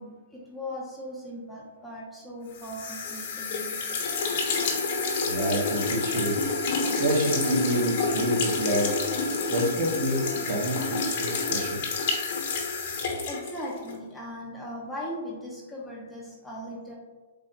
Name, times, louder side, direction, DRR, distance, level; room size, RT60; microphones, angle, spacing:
voice 1, 0.0-4.0 13.3-16.9, equal, 5° left, -5 dB, 0.7 m, -39 dB
sound 1, 2.5-14.0, left 4 dB, 55° left, 1.0 m, -29 dB
voice 2, 5.2-6.3 6.6-9.0 9.5-11.8, right 1 dB, 50° right, -3 dB, 1.2 m, -28 dB
3.7 x 3.0 x 2.9 m, 1.3 s
hypercardioid pair, 130°, 0 cm